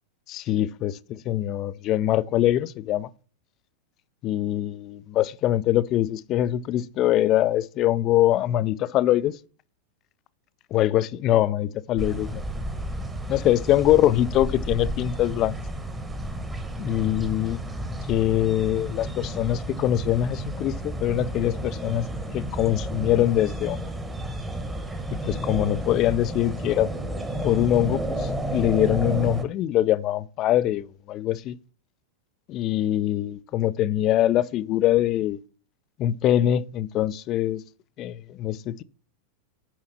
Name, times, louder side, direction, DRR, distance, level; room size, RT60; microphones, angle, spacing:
voice 1, 0.3-3.1 4.2-9.4 10.7-12.4 13.3-15.5 16.8-17.6 18.1-22.1 22.3-23.9 25.1-26.9 27.4-31.5 32.5-35.4 36.0-37.6 38.0-38.8, left 13 dB, 35° left, 0.4 m, -23 dB
sound 1, 12.0-29.4, right 1 dB, 10° right, 1.2 m, -32 dB
7.3 x 5.6 x 5.7 m
figure-of-eight pair, 90°, 0 cm